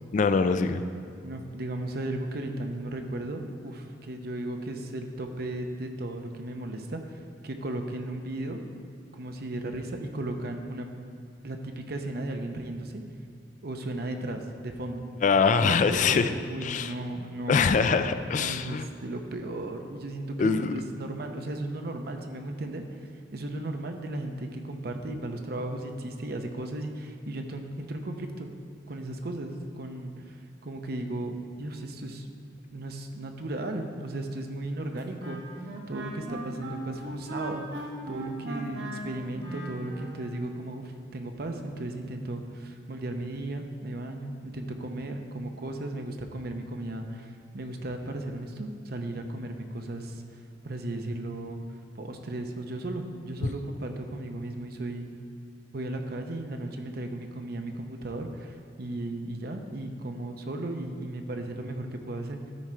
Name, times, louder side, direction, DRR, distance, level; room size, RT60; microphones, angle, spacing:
voice 1, 0.1-0.8 15.2-16.3 16.6-16.9 17.5-18.9 20.4-20.7, left 5 dB, 45° left, 10 dB, 0.3 m, -23 dB
voice 2, 1.2-8.7 9.1-10.9 11.4-13.0 13.6-15.1 15.6-17.6 17.9-23.0 23.3-28.5 28.9-32.3 32.7-35.4 35.9-37.6 38.1-50.2 50.6-51.6 51.9-55.1 55.7-62.5, right 1 dB, 60° right, 5 dB, 0.8 m, -35 dB
Wind instrument woodwind instrument, 34.9-40.3, right 2 dB, 85° right, 1.2 m, -38 dB
12.5 x 4.9 x 4.4 m, 2.3 s
head